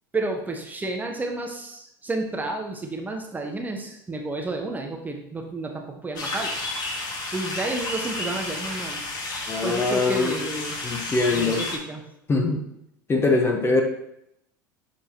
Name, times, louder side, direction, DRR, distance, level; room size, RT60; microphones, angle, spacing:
voice 1, 0.1-6.6 7.3-9.0 9.6-10.8 11.3-12.0, right 2 dB, 15° right, 2 dB, 1.0 m, -31 dB
sound 1, 6.2-11.8, left 2 dB, 40° left, 1.5 m, -31 dB
voice 2, 9.5-10.4 10.8-11.6 12.3-12.6 13.1-13.8, left 3 dB, 25° left, 3 dB, 1.0 m, -22 dB
6.9 x 5.0 x 2.9 m, 0.79 s
hypercardioid pair, 80°, 11 cm